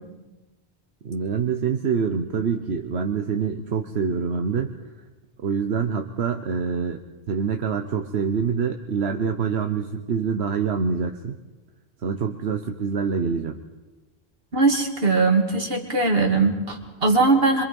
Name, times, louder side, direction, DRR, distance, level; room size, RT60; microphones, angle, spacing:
voice 1, 1.0-4.7 5.4-7.0 7.3-11.4 12.0-13.6, right 6 dB, 85° right, 5 dB, 1.3 m, -25 dB
voice 2, 14.5-17.6, right 3 dB, 65° right, 2 dB, 2.8 m, -20 dB
26.0 x 24.5 x 5.4 m, 1.1 s
omnidirectional pair, 1.0 m